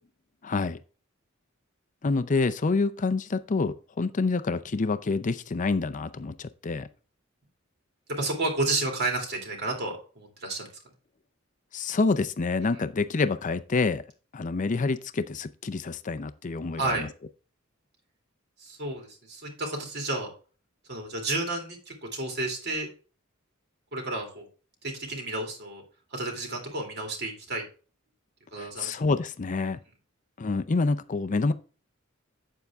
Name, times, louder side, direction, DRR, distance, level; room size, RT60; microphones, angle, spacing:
voice 1, 0.4-0.8 2.0-6.9 11.7-14.0 14.3-17.1 28.6-29.8 30.4-31.5, left 3 dB, 35° left, 0.5 m, -27 dB
voice 2, 8.1-10.7 16.8-17.0 18.6-20.3 20.9-22.9 23.9-24.4 24.8-25.8 26.1-27.6 28.5-29.0, right 2 dB, 55° right, 2.4 m, -31 dB
8.1 x 7.2 x 3.5 m
head